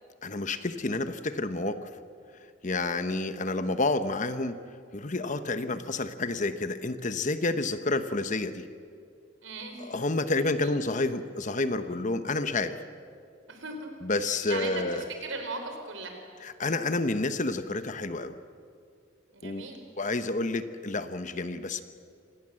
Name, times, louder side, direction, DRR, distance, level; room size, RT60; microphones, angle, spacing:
voice 1, 0.2-1.9 2.6-4.6 4.9-8.7 9.8-12.8 14.0-15.0 16.4-18.4 19.4-19.6 20.0-21.8, left 2 dB, 40° left, 11 dB, 1.0 m, -29 dB
voice 2, 9.4-9.9 10.6-10.8 13.5-16.2 19.3-19.8, right 3 dB, 80° right, 5 dB, 4.2 m, -38 dB
26.5 x 18.5 x 7.7 m, 2.3 s
head